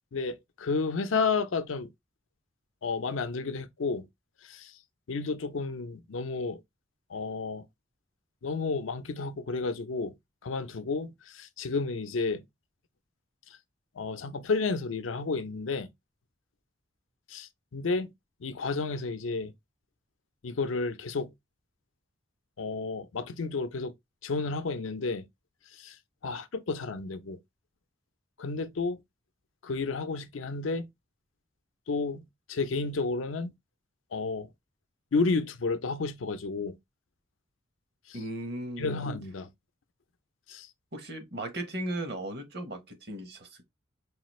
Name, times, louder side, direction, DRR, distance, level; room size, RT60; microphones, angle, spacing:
voice 1, 0.1-1.9 2.8-4.0 4.4-4.7 5.1-6.6 7.1-7.7 8.4-10.1 10.4-12.4 14.0-15.9 17.3-18.1 18.4-19.5 20.4-21.3 22.6-23.9 24.2-25.2 25.8-26.0 26.2-27.4 28.4-29.0 29.6-30.9 31.9-33.5 34.1-34.5 35.1-36.8 38.1-38.2 38.8-39.5 40.5-40.7, left 4 dB, 85° left, 0.5 m, -31 dB
voice 2, 38.1-39.0 40.9-43.6, right 1 dB, 55° right, 1.0 m, -37 dB
4.9 x 2.4 x 3.0 m
head